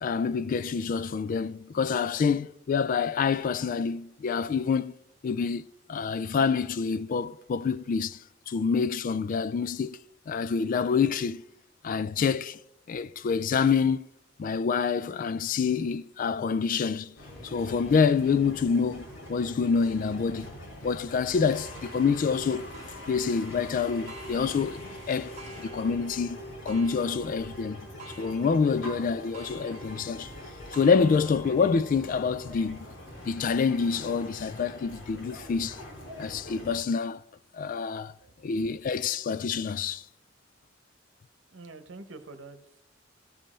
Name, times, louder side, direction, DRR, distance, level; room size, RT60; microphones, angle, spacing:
voice 1, 0.0-4.9 5.2-8.2 8.5-10.0 10.3-11.4 11.8-12.6 12.9-14.1 14.4-17.1 17.4-20.5 20.8-22.7 23.1-26.4 26.7-27.8 28.2-30.3 30.7-32.9 33.2-35.8 36.2-37.2 37.5-38.1 38.4-40.0, left 5 dB, 45° left, 0.3 m, -27 dB
sound 1, 17.2-36.8, left 1 dB, 80° left, 2.6 m, -43 dB
Clock, 21.5-36.8 37.4-37.5 38.0-38.1 39.1-39.2, right 3 dB, 35° right, 1.3 m, -52 dB
voice 2, 38.2-38.6 41.5-42.8, right 3 dB, 75° right, 1.0 m, -47 dB
14.0 x 5.3 x 4.3 m
head